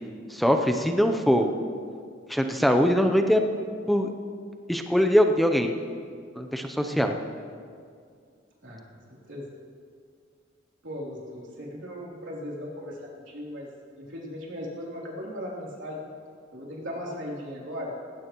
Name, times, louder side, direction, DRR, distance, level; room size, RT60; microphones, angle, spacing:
voice 1, 0.3-1.5 2.3-3.4 3.9-4.1 4.7-5.7 6.4-7.1, equal, ahead, 4 dB, 0.6 m, -22 dB
voice 2, 6.8-7.2 8.6-8.8 9.3-9.5 10.8-13.0 13.3-13.7 14.0-16.1 16.5-17.9, equal, 85° right, -4 dB, 3.2 m, -37 dB
19.0 x 15.5 x 3.0 m, 2.2 s
head